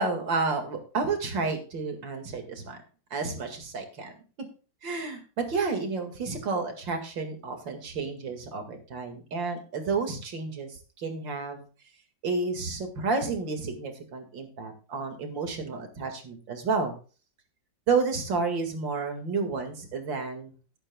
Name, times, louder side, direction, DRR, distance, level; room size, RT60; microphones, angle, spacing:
voice 1, 0.0-2.8 3.1-4.1 4.8-11.6 12.2-16.9 17.9-20.5, right 4 dB, 80° right, 5 dB, 2.8 m, -31 dB
18.0 x 8.9 x 2.3 m, 0.36 s
omnidirectional pair, 2.0 m